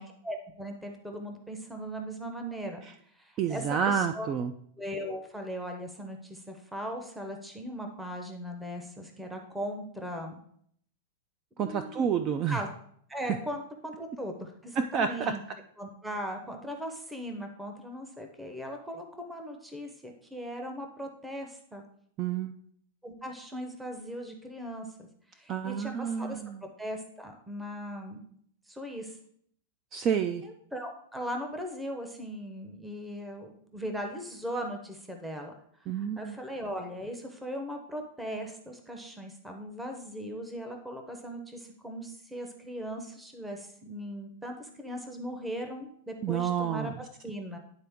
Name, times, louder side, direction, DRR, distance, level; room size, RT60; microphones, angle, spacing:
voice 1, 0.0-2.8 3.1-4.3 4.8-10.3 11.6-12.1 12.5-12.7 13.1-15.4 15.8-21.8 23.0-25.1 25.3-26.4 26.8-28.2 28.7-29.2 30.4-35.5 35.9-47.6, equal, 5° right, 3 dB, 0.7 m, -39 dB
voice 2, 3.4-4.5 11.6-12.6 14.9-15.3 22.2-22.5 25.5-26.6 29.9-30.4 35.9-36.4 46.2-46.9, right 7 dB, 30° right, 8 dB, 0.3 m, -29 dB
10.5 x 3.8 x 3.5 m, 0.66 s
supercardioid pair, 155°, 0 cm